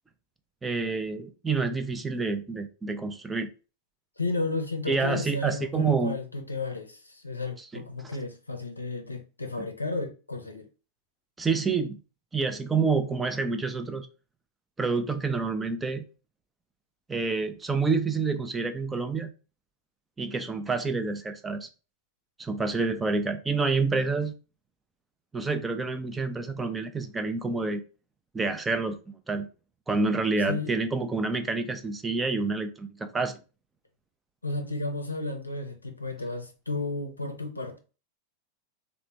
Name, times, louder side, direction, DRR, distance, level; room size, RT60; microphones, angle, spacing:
voice 1, 0.6-3.5 4.9-6.2 7.6-7.8 11.4-12.0 12.3-14.1 14.8-16.0 17.1-19.3 20.2-21.7 22.4-24.3 25.3-27.8 28.3-29.0 29.3-29.5 29.9-33.4, right 4 dB, 10° right, 0.4 m, -28 dB
voice 2, 4.2-10.7 30.5-30.7 34.4-37.8, left 2 dB, 80° left, 0.5 m, -33 dB
3.2 x 2.1 x 3.0 m
figure-of-eight pair, 90°, 0 cm